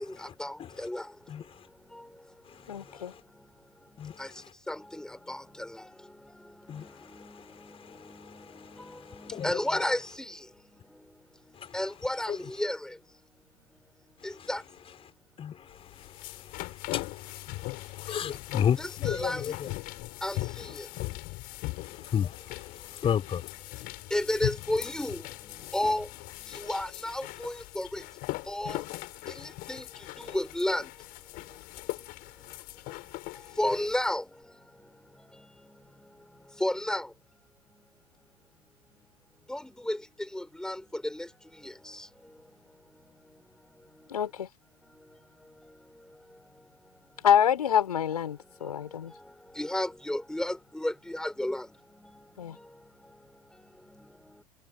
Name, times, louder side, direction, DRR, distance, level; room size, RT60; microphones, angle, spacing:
voice 1, 0.4-1.0 4.2-4.3 4.7-5.4 9.2-10.0 11.7-12.8 14.5-14.6 18.8-19.5 20.2-20.4 24.1-25.2 25.7-26.1 26.7-27.9 28.5-28.8 29.7-29.8 30.3-30.8 33.6-34.2 36.6-37.1 39.5-39.6 39.9-40.0 40.3-40.8 41.1-41.2 49.6-51.6, left 1 dB, 5° left, 4.7 m, -30 dB
voice 2, 1.3-1.7 2.5-3.2 4.0-4.5 6.7-9.8 11.5-11.8 12.3-12.4 14.2-14.5 15.4-19.7 20.9-21.1 21.8-23.5, left 8 dB, 30° left, 5.5 m, -35 dB
voice 3, 2.7-3.1 44.1-44.5 47.2-49.1 52.4-52.6, left 9 dB, 75° left, 6.3 m, -26 dB
sound 1, 15.7-34.2, left 22 dB, 45° left, 7.1 m, -39 dB
figure-of-eight pair, 85°, 20 cm